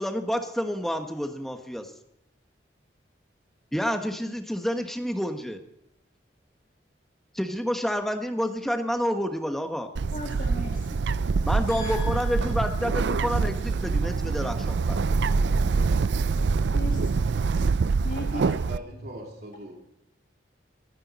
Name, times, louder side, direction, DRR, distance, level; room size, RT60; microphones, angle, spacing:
voice 1, 0.0-1.9 3.7-5.6 7.3-9.9 11.4-15.0, equal, ahead, 1.2 m, -29 dB
Bird, 10.0-18.8, right 4 dB, 75° right, 0.4 m, -25 dB
voice 2, 10.1-11.0 11.7-12.6 16.7-17.2 18.0-18.6, left 2 dB, 50° left, 1.7 m, -38 dB
voice 3, 18.3-19.7, right 1 dB, 60° right, 3.2 m, -40 dB
24.0 x 10.0 x 4.2 m
head